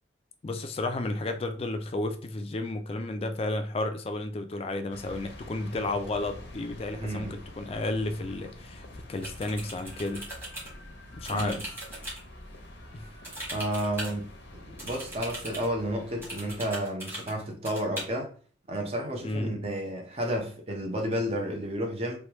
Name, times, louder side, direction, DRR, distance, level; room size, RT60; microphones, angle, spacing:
voice 1, 0.4-10.3 11.1-11.6 12.9-13.1 19.2-19.5, left 2 dB, 35° left, 0.4 m, -32 dB
sound 1, 4.9-16.6, left 1 dB, 90° left, 0.7 m, -46 dB
voice 2, 7.0-7.4 11.3-11.6 13.5-18.3 18.7-22.2, equal, 35° right, 0.7 m, -31 dB
sound 2, 9.2-10.7 11.2-12.2 13.2-14.1 14.8-15.7 16.2-17.3 17.7-18.0, right 1 dB, 15° right, 1.2 m, -39 dB
3.2 x 2.3 x 2.9 m
head